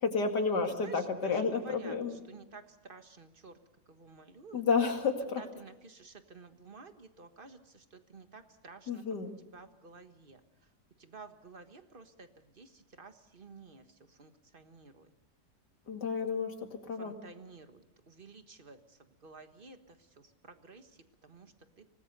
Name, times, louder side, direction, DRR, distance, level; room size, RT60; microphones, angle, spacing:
voice 1, 0.0-2.2 4.5-5.4 8.9-9.4 15.9-17.2, left 5 dB, 85° left, 5 dB, 2.8 m, -31 dB
voice 2, 0.8-3.6 3.9-4.6 5.4-9.0 9.5-10.4 11.0-12.3 12.5-13.8 14.1-15.1 17.0-20.9 21.2-21.5, right 4 dB, 35° right, 8 dB, 1.6 m, -52 dB
25.5 x 19.5 x 6.8 m, 1.0 s
omnidirectional pair, 1.8 m